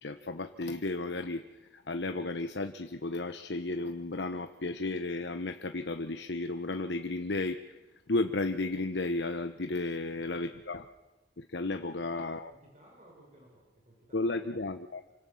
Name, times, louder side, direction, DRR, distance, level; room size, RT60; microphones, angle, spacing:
voice 1, 0.0-1.4 1.7-7.8 8.1-10.9 11.4-12.5 14.1-15.1, left 2 dB, 85° left, 7 dB, 1.2 m, -33 dB
voice 2, 10.0-10.6 11.9-14.4, right 1 dB, 40° right, -2 dB, 6.5 m, -59 dB
28.0 x 25.5 x 7.2 m, 1.0 s
head